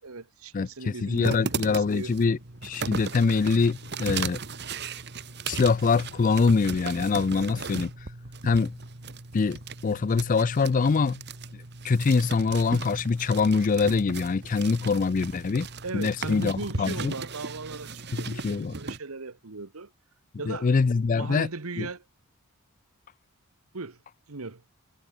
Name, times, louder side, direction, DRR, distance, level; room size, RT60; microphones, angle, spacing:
voice 1, 0.0-2.2 15.8-19.9 20.4-20.7 21.1-22.0 23.7-24.0 24.3-24.6, right 3 dB, 75° right, 1.3 m, -37 dB
voice 2, 0.5-4.4 5.5-7.9 8.4-8.7 9.3-11.2 11.8-15.7 15.9-17.1 18.1-18.7 20.5-21.5 21.8-21.9, left 4 dB, 35° left, 0.3 m, -24 dB
sound 1, 1.1-19.0, right 4 dB, 50° right, 2.0 m, -37 dB
head